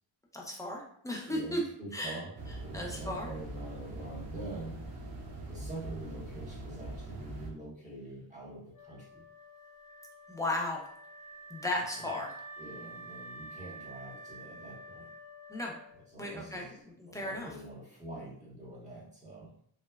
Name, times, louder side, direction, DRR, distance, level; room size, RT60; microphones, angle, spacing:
voice 1, 0.3-1.6 1.9-2.2 2.7-3.3 10.3-10.8 11.5-12.3 15.5-15.8 16.2-17.5, left 1 dB, 5° left, -2 dB, 0.5 m, -35 dB
voice 2, 1.3-4.8 5.5-9.2 12.6-15.1 16.1-16.8 17.0-19.5, right 1 dB, 15° right, -7 dB, 1.3 m, -45 dB
sound 1, 2.4-7.5, right 2 dB, 55° right, 0.6 m, -42 dB
Wind instrument woodwind instrument, 8.7-16.3, right 2 dB, 45° left, 0.8 m, -49 dB
2.9 x 2.1 x 2.3 m, 0.64 s
cardioid pair, 90°, 48 cm